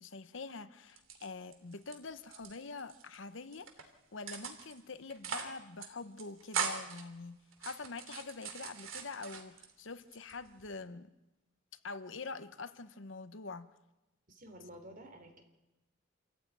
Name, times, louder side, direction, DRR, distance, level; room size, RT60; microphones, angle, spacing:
voice 1, 0.0-11.1 11.8-13.7, left 4 dB, 65° left, 13 dB, 1.0 m, -45 dB
sound 1, 0.9-1.9 2.2-3.2 3.5-3.8 4.3-4.8 5.1-5.5 5.8-5.9 6.2-7.0 7.5-9.7 10.1-10.7, right 6 dB, 80° right, 3.0 m, -40 dB
voice 2, 14.3-15.4, right 1 dB, 45° right, 6 dB, 3.7 m, -51 dB
28.0 x 14.5 x 9.3 m, 1.0 s
head